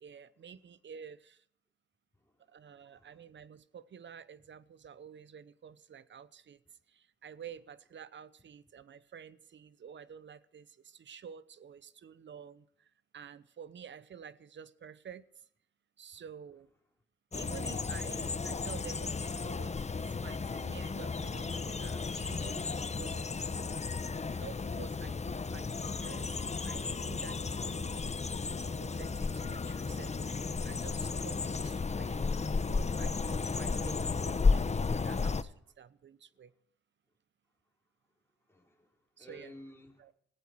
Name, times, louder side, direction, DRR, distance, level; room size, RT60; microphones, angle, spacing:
voice 1, 0.0-1.4 2.5-6.6 6.9-15.5 16.0-16.7 17.3-23.6 24.3-26.4 26.6-28.2 28.6-32.3 32.7-36.5 39.2-39.5 40.0-40.1, right 7 dB, 65° right, 0.9 m, -50 dB
voice 2, 2.1-3.3 16.1-16.2 35.6-35.7 38.4-40.1, equal, 10° left, 4.2 m, -56 dB
sound 1, 17.3-35.4, left 4 dB, 35° left, 0.8 m, -34 dB
18.5 x 15.0 x 4.7 m
supercardioid pair, 50°, 21 cm